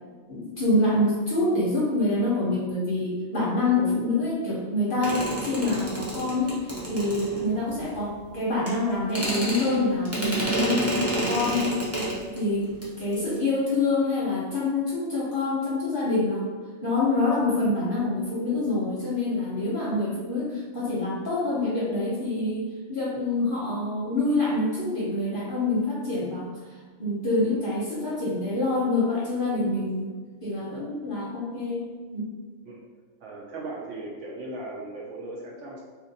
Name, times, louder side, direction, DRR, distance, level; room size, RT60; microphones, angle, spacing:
voice 1, 0.3-11.8 12.3-12.7 13.0-16.5 16.8-26.5 27.0-30.1 30.4-32.3, left 2 dB, 45° left, -6 dB, 0.8 m, -26 dB
sound 1, 5.0-7.8 8.7-8.8 9.1-12.4 12.7-12.9 13.1-13.4, right 1 dB, 15° right, 0.5 m, -29 dB
voice 2, 33.2-35.8, right 2 dB, 65° right, -3 dB, 0.8 m, -38 dB
2.8 x 2.5 x 3.9 m, 1.4 s
omnidirectional pair, 1.5 m